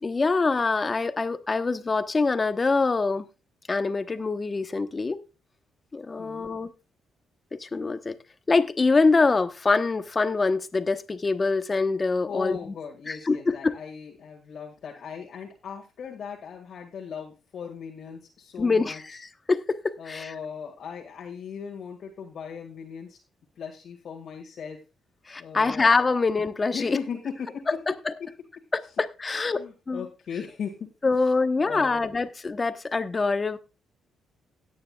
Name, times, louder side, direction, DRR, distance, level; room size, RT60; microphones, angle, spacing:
voice 1, 0.0-3.2 3.7-5.2 5.9-6.7 7.5-8.2 8.5-12.6 13.1-13.8 18.6-20.3 25.3-27.0 27.9-28.1 28.7-30.0 31.0-33.6, left 3 dB, 30° left, 1.0 m, -25 dB
voice 2, 6.2-6.5 12.3-19.0 20.0-23.2 23.6-24.8 25.4-25.9 26.7-27.8 28.2-28.3 29.5-30.8 31.2-31.3 31.6-32.1, left 6 dB, 60° left, 2.0 m, -38 dB
17.0 x 9.5 x 2.3 m
cardioid pair, 90°, 0 cm